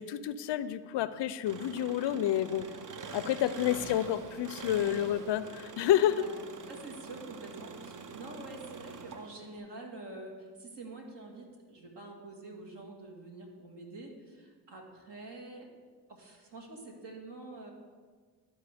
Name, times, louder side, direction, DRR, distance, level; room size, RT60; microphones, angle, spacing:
voice 1, 0.0-2.7 3.1-6.2, left 11 dB, 65° left, 14 dB, 0.5 m, -29 dB
Engine, 1.5-9.6, right 5 dB, 45° right, 0.7 m, -45 dB
voice 2, 2.4-2.9 3.4-3.9 6.2-6.4 6.7-15.7 16.1-17.7, right 2 dB, 60° right, 0 dB, 1.8 m, -47 dB
12.0 x 4.3 x 3.4 m, 1.5 s
supercardioid pair, 45°, 46 cm